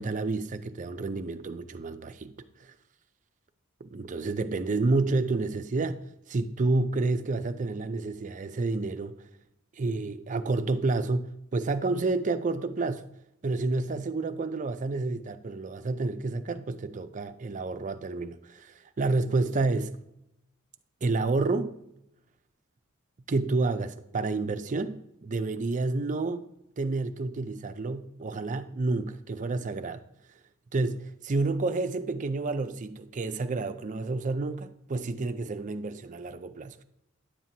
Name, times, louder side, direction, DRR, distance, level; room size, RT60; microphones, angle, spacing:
voice 1, 0.0-2.3 2.6-2.7 3.8-6.0 6.3-9.1 9.8-13.0 13.4-20.0 21.0-21.8 23.3-26.5 26.8-30.0 30.7-36.8, right 3 dB, 35° right, 0.5 m, -29 dB
10.0 x 7.4 x 2.8 m
head